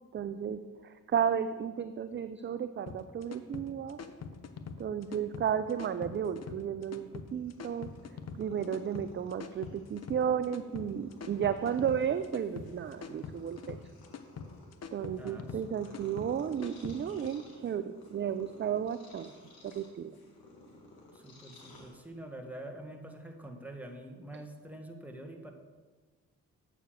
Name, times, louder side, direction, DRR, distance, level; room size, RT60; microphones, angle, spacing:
voice 1, 0.1-4.0 4.8-7.9 8.4-13.8 14.9-19.3 19.6-20.2 24.3-24.4, right 8 dB, 30° right, 11 dB, 0.4 m, -33 dB
sound 1, 2.9-17.3, left 5 dB, 45° left, 0.8 m, -44 dB
Purr, 7.3-22.4, left 2 dB, 70° left, 1.7 m, -58 dB
voice 2, 15.2-16.0 21.1-25.5, right 1 dB, 5° right, 3 dB, 1.5 m, -46 dB
7.8 x 5.0 x 6.3 m, 1.3 s
hypercardioid pair, 40°, 37 cm